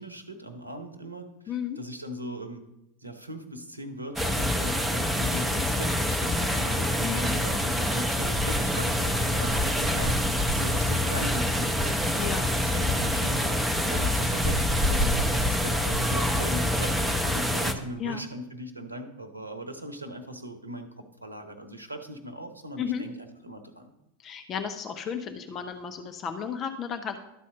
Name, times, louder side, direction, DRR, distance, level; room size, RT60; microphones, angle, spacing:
voice 1, 0.0-2.6 3.0-10.2 10.5-23.9, equal, 85° right, 8 dB, 0.9 m, -39 dB
voice 2, 1.5-1.8 7.0-7.4 12.1-12.5 18.0-18.2 22.8-23.1 24.2-27.2, left 7 dB, 30° left, 7 dB, 0.6 m, -33 dB
sound 1, 4.2-17.7, left 1 dB, 5° right, 0.8 m, -26 dB
12.0 x 4.2 x 5.9 m, 0.90 s
figure-of-eight pair, 85°, 0 cm